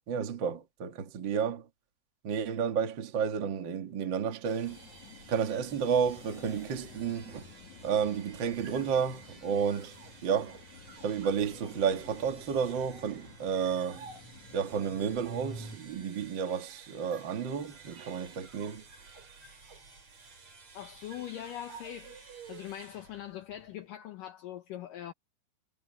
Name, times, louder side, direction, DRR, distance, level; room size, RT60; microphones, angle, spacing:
voice 1, 0.1-1.7 2.2-4.8 5.3-7.5 7.8-10.6 11.0-14.0 14.5-18.8, right 7 dB, 80° right, 1.0 m, -31 dB
sound 1, 4.4-23.9, right 4 dB, 35° right, 5.9 m, -54 dB
sound 2, 4.6-15.8, left 2 dB, 45° left, 3.8 m, -50 dB
sound 3, 8.1-22.9, right 5 dB, 60° right, 9.3 m, -55 dB
voice 2, 20.7-25.1, left 11 dB, 75° left, 2.0 m, -42 dB
omnidirectional pair, 5.3 m